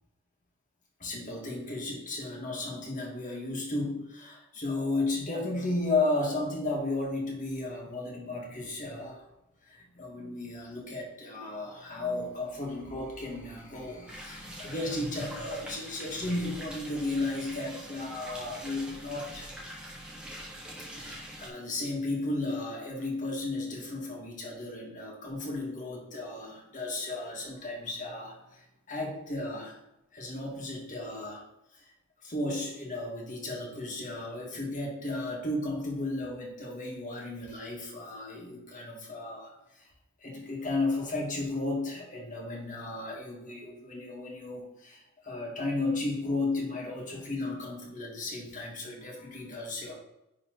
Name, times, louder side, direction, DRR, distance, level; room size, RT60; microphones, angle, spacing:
voice 1, 1.0-9.3 9.6-19.5 20.8-29.8 30.1-31.4 31.7-31.8 32.2-39.9 40.2-49.9, left 2 dB, 35° left, -1 dB, 1.8 m, -34 dB
sound 1, 14.1-21.5, equal, 5° right, 1.3 m, -44 dB
10.0 x 3.6 x 3.9 m, 0.90 s
head